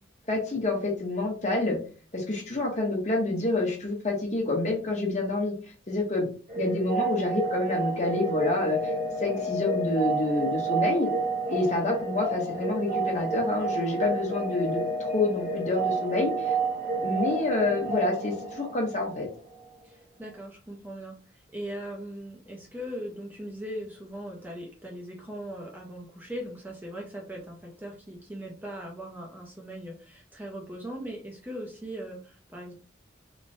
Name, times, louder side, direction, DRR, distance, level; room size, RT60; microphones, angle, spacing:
voice 1, 0.3-1.8 2.1-5.5 5.9-6.3 6.6-8.8 9.2-11.1 11.5-16.5 17.0-19.3, left 2 dB, 35° left, 1 dB, 0.8 m, -27 dB
sound 1, 6.5-19.3, right 2 dB, 50° right, 0.7 m, -30 dB
voice 2, 19.8-32.7, equal, 10° right, -1 dB, 0.4 m, -39 dB
3.0 x 2.1 x 2.6 m, 0.38 s
head